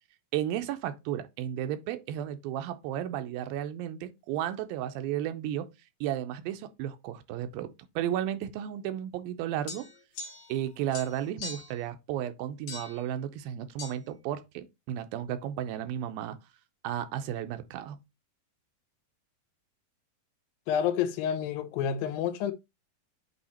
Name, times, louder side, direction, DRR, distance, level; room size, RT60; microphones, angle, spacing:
voice 1, 0.3-5.7 6.0-9.9 10.5-16.4 16.8-18.0, right 11 dB, 85° right, 2.5 m, -33 dB
sound 1, 9.7-10.6 10.9-11.8 12.7-13.1 13.8-14.0, left 4 dB, 70° left, 2.8 m, -41 dB
voice 2, 20.7-22.5, left 8 dB, 85° left, 2.5 m, -29 dB
8.2 x 2.9 x 4.2 m
omnidirectional pair, 4.1 m